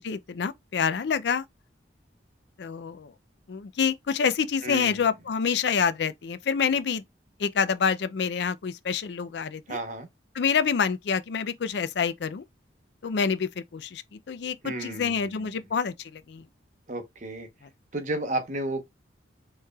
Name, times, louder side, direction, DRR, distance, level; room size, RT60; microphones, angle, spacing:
voice 1, 0.0-1.4 2.6-3.1 3.5-7.0 7.4-9.8 10.3-12.4 13.0-16.4, left 6 dB, 65° left, 0.4 m, -27 dB
voice 2, 4.6-5.1 9.7-10.1 14.6-15.5 16.9-17.5 17.9-18.9, right 1 dB, 40° right, 0.9 m, -33 dB
4.5 x 3.1 x 2.3 m
head